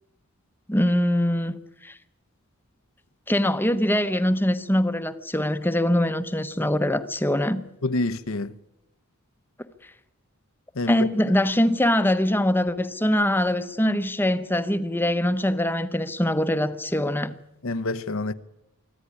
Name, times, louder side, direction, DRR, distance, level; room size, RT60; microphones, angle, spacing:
voice 1, 0.7-1.6 1.8-2.0 3.3-7.6 10.9-17.3, left 1 dB, 10° left, 1.0 m, -23 dB
voice 2, 7.8-8.5 10.8-11.1 17.6-18.3, left 2 dB, 65° left, 0.9 m, -27 dB
24.5 x 14.5 x 9.8 m
head